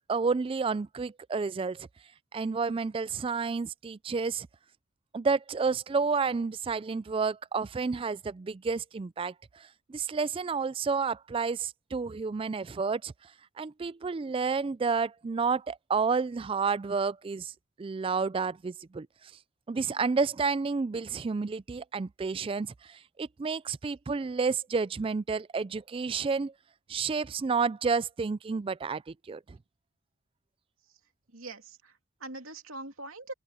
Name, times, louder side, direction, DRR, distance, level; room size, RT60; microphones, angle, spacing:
voice 1, 0.1-1.9 2.3-4.5 5.1-13.1 13.6-17.5 17.8-19.1 19.7-26.5 26.9-29.6, right 5 dB, 25° right, 0.3 m, -30 dB
voice 2, 31.3-33.3, right 2 dB, 70° right, 2.9 m, -43 dB
open air
head